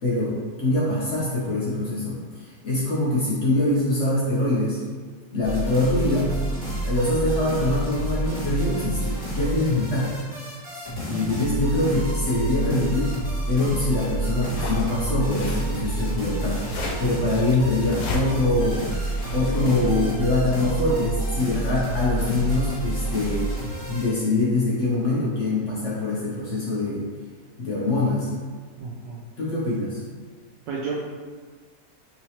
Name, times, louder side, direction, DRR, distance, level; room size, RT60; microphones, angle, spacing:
voice 1, 0.0-4.8 5.3-6.4 6.8-10.2 11.1-13.2 13.5-18.8 19.3-23.5 23.8-27.1 27.6-28.3 29.4-30.0, left 2 dB, 60° left, -6 dB, 0.8 m, -24 dB
sound 1, 5.4-24.1, right 2 dB, 5° left, 1.2 m, -29 dB
sound 2, 14.4-20.0, left 2 dB, 85° left, 1.2 m, -35 dB
voice 2, 28.8-29.2 30.7-31.0, right 4 dB, 80° right, -6 dB, 1.2 m, -31 dB
3.9 x 2.9 x 2.8 m, 1.5 s
omnidirectional pair, 1.9 m